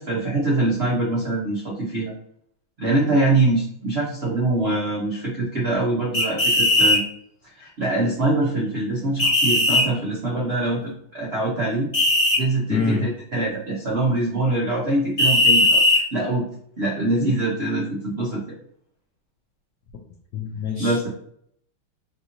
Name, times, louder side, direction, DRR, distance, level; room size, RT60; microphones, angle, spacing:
voice 1, 0.0-2.1 2.8-7.0 7.6-11.9 12.4-16.4 16.8-18.4 20.8-21.1, right 2 dB, 70° right, -5 dB, 0.6 m, -24 dB
sound 1, 6.1-7.0 9.2-9.8 11.9-12.4 15.2-16.0, left 1 dB, 35° left, 1.3 m, -17 dB
voice 2, 12.7-13.1 20.3-21.1, left 4 dB, 85° left, 1 dB, 0.9 m, -25 dB
3.5 x 2.6 x 2.8 m, 0.65 s
omnidirectional pair, 2.3 m